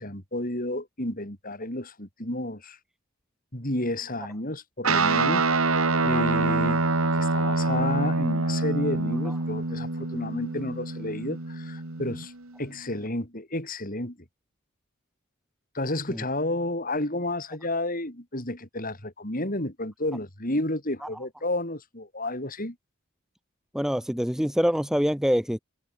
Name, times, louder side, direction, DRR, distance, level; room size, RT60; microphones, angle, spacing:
voice 1, 0.0-2.8 3.5-6.9 7.1-12.3 12.6-14.2 15.7-22.8, left 1 dB, 40° left, 5.6 m, -31 dB
Guitar, 4.8-12.5, right 3 dB, 85° right, 2.1 m, -26 dB
voice 2, 23.7-25.6, equal, ahead, 1.1 m, -25 dB
head